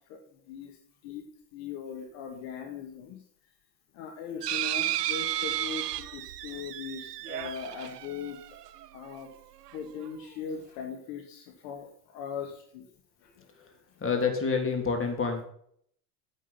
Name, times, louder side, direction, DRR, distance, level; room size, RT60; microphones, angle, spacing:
voice 1, 0.1-0.8 1.0-1.2 1.5-3.2 3.9-8.4 8.9-9.3 9.7-12.8 13.2-13.7, left 6 dB, 60° left, 3 dB, 2.0 m, -40 dB
sound 1, 4.4-9.0 9.7-9.8 10.0-10.1, right 13 dB, 80° right, 0.7 m, -33 dB
voice 2, 14.0-15.4, left 5 dB, 25° left, 4 dB, 3.4 m, -27 dB
9.0 x 8.4 x 5.7 m, 0.64 s
hypercardioid pair, 80°, 47 cm